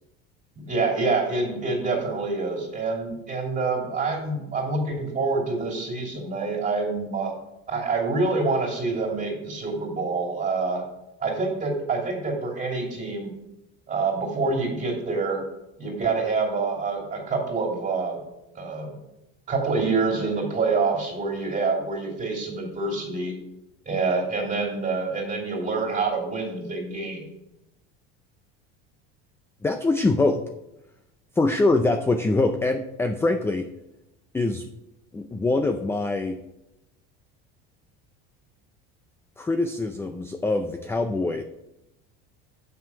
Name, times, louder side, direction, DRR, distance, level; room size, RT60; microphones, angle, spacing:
voice 1, 0.6-7.3 7.7-10.8 11.2-13.3 13.9-15.4 15.8-18.2 18.5-19.0 19.5-23.3 23.8-27.2, right 3 dB, 25° right, 0 dB, 3.0 m, -26 dB
voice 2, 29.6-30.4 31.4-33.7 34.3-34.7 35.1-36.4 39.4-41.4, left 2 dB, 10° left, 6 dB, 0.4 m, -24 dB
7.1 x 5.8 x 6.1 m, 0.91 s
supercardioid pair, 125°, 29 cm